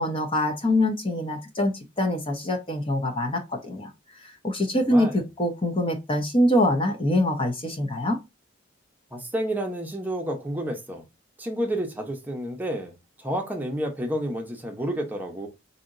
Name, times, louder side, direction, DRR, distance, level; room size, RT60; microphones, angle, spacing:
voice 1, 0.0-3.9 4.2-8.2, left 1 dB, 25° left, 0.7 m, -24 dB
voice 2, 4.9-5.2 9.1-11.0 11.4-12.9 13.2-15.5, right 1 dB, 10° right, 0.7 m, -30 dB
4.2 x 2.8 x 2.5 m
head